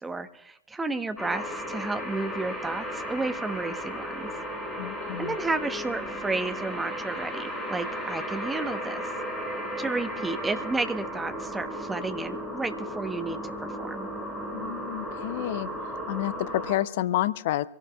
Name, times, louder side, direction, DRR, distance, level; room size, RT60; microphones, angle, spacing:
voice 1, 0.0-4.3 5.2-9.0 9.8-14.1, right 3 dB, 10° right, 9 dB, 1.0 m, -32 dB
sound 1, 1.2-16.7, equal, 10° left, 6.3 m, -35 dB
voice 2, 4.8-5.4 14.5-15.7 16.1-17.7, left 14 dB, 55° left, 17 dB, 0.5 m, -29 dB
26.0 x 17.0 x 2.3 m, 0.77 s
figure-of-eight pair, 90°, 0 cm